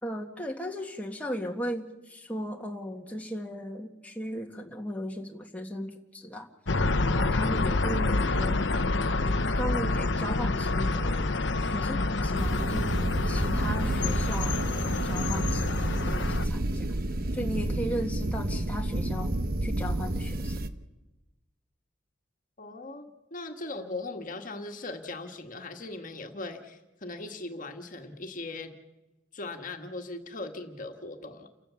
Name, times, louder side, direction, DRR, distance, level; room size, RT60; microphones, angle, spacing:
voice 1, 0.0-6.5 7.0-8.6 9.5-12.9 13.2-17.0 17.3-19.3 19.6-20.5, equal, 10° left, 1 dB, 1.8 m, -36 dB
sound 1, 6.7-16.5, left 2 dB, 70° left, 1.0 m, -28 dB
sound 2, 12.4-20.7, right 1 dB, 50° right, 1.0 m, -30 dB
voice 2, 22.6-28.7 29.3-31.5, left 2 dB, 45° left, 4 dB, 1.7 m, -39 dB
29.5 x 15.5 x 7.1 m, 1.0 s
head